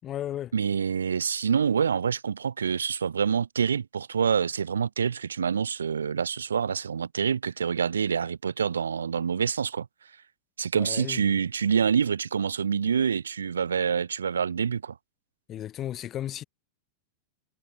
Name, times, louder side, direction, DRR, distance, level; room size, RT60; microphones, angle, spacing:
voice 1, 0.0-0.5 10.7-11.4 15.5-16.4, left 11 dB, 35° left, 5.3 m, -35 dB
voice 2, 0.5-9.9 10.6-14.9, right 7 dB, 85° right, 0.9 m, -26 dB
hypercardioid pair, 95°, 0 cm